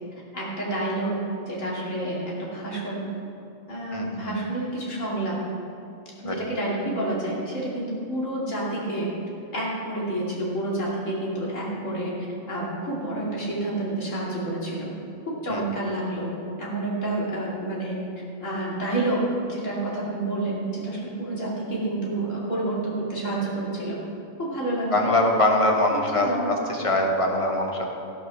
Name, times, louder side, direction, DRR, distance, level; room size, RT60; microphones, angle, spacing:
voice 1, 0.3-1.1 1.5-3.1 3.7-5.3 6.2-9.1 9.5-12.1 12.5-14.9 15.4-16.3 16.6-18.0 18.4-24.0 24.4-25.1 25.9-26.5, right 1 dB, 60° left, -5 dB, 2.9 m, -29 dB
voice 2, 24.9-27.9, left 1 dB, 25° left, 1 dB, 1.2 m, -22 dB
16.0 x 5.5 x 6.0 m, 2.7 s
omnidirectional pair, 1.5 m